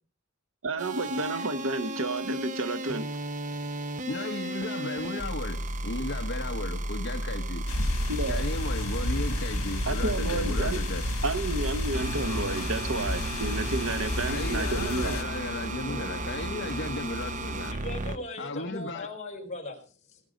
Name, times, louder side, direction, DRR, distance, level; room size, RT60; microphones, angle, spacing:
voice 1, 0.6-3.1 8.1-8.4 9.9-10.8 11.2-15.2, right 2 dB, 70° right, 1.2 m, -31 dB
sound 1, 0.8-18.2, right 1 dB, 35° right, 0.9 m, -34 dB
voice 2, 4.1-7.7 8.3-11.1 14.3-17.7 18.4-19.1, left 2 dB, 55° left, 1.3 m, -35 dB
sound 2, 7.7-15.2, left 1 dB, 90° left, 1.7 m, -32 dB
voice 3, 17.7-20.2, left 2 dB, 35° left, 5.2 m, -39 dB
19.5 x 10.5 x 5.2 m
head